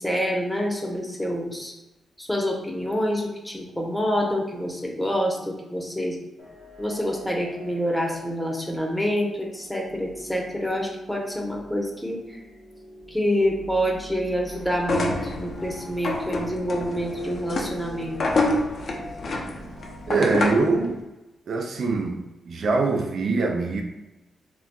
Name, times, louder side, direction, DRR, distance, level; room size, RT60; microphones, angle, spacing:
voice 1, 0.0-1.7 2.2-6.2 6.8-12.2 13.1-18.2, equal, 5° left, 0 dB, 0.8 m, -27 dB
sound 1, 6.4-20.1, right 1 dB, 85° right, 1.0 m, -43 dB
sound 2, 14.8-20.7, left 2 dB, 60° left, 0.6 m, -27 dB
voice 2, 20.1-21.0 21.5-22.2 22.5-23.8, right 3 dB, 65° right, 3 dB, 0.4 m, -23 dB
4.0 x 2.2 x 2.2 m, 1.0 s
supercardioid pair, 55°, 0 cm